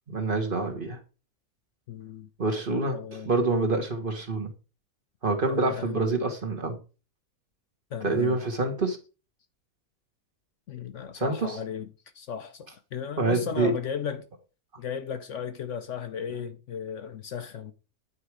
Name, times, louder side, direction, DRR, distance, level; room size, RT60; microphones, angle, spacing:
voice 1, 0.1-1.0 2.4-4.5 5.2-6.8 8.0-9.0 11.1-11.6 13.2-13.7, right 3 dB, 35° right, 1.5 m, -27 dB
voice 2, 1.9-2.3 2.9-3.3 5.5-6.0 7.9-8.4 10.7-11.9 12.1-14.3 14.8-17.7, left 7 dB, 60° left, 0.9 m, -35 dB
9.5 x 4.7 x 4.7 m
omnidirectional pair, 1.6 m